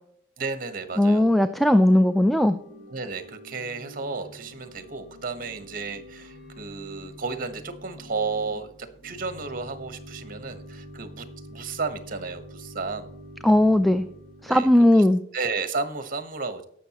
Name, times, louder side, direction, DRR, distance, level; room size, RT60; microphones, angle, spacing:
voice 1, 0.4-1.3 2.9-13.2 14.5-14.7 14.9-15.0 15.3-16.6, right 4 dB, 50° right, 10 dB, 1.2 m, -33 dB
Organ / Church bell, 0.7-14.8, equal, 75° left, 2.2 m, -46 dB
voice 2, 1.0-2.6 13.4-14.1 14.4-15.2, left 1 dB, ahead, 10 dB, 0.4 m, -18 dB
18.0 x 6.4 x 2.9 m, 0.68 s
head